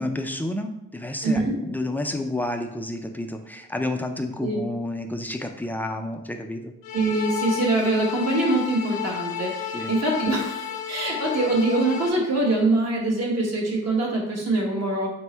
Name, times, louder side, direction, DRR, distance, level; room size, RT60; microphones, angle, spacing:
voice 1, 0.0-6.7 9.7-9.9, left 1 dB, 5° left, 4 dB, 0.4 m, -30 dB
voice 2, 1.2-1.6 4.4-4.6 6.9-15.1, right 2 dB, 55° right, -1 dB, 1.3 m, -24 dB
sound 1, 6.8-12.1, left 9 dB, 90° left, 0.5 m, -32 dB
4.4 x 2.0 x 4.4 m, 0.87 s
cardioid pair, 90°, 30 cm